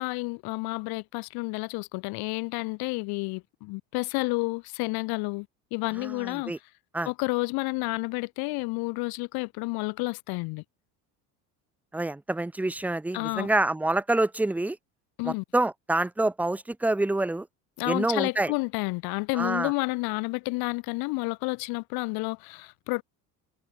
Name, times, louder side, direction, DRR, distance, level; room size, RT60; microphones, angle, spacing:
voice 1, 0.0-5.5 5.7-6.5 7.0-10.6 13.1-13.5 15.2-15.4 17.8-23.0, left 27 dB, 50° left, 1.0 m, -30 dB
voice 2, 6.0-6.6 6.9-7.1 11.9-14.8 15.2-17.5 17.9-18.5 19.4-19.7, right 2 dB, 5° right, 0.6 m, -27 dB
figure-of-eight pair, 60°, 46 cm